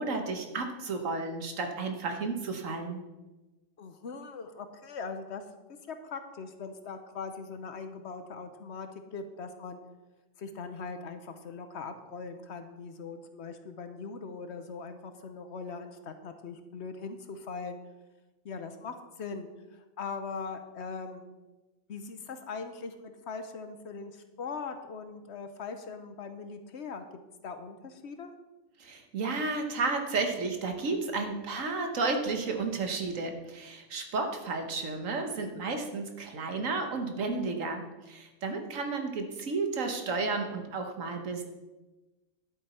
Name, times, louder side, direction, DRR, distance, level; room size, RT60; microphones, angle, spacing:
voice 1, 0.0-3.0 28.8-41.4, right 3 dB, 90° right, 5 dB, 1.6 m, -32 dB
voice 2, 3.8-5.4 5.9-9.8 10.4-17.8 18.4-21.3 21.9-27.0 27.4-28.3 38.6-38.8, left 4 dB, 60° left, 8 dB, 1.1 m, -41 dB
11.0 x 8.1 x 4.3 m, 1.1 s
omnidirectional pair, 1.3 m